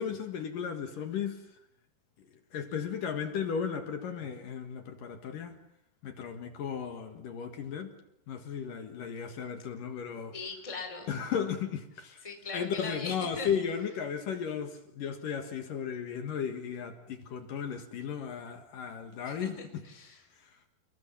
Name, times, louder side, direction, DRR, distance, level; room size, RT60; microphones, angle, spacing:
voice 1, 0.0-1.4 2.5-5.6 6.0-7.9 8.3-10.3 11.1-12.2 12.5-19.8 20.4-20.7, left 7 dB, 60° left, 2.9 m, -35 dB
voice 2, 10.3-11.1 12.2-13.5 19.2-20.2, left 4 dB, 10° left, 3.9 m, -40 dB
29.0 x 22.5 x 7.4 m
omnidirectional pair, 5.0 m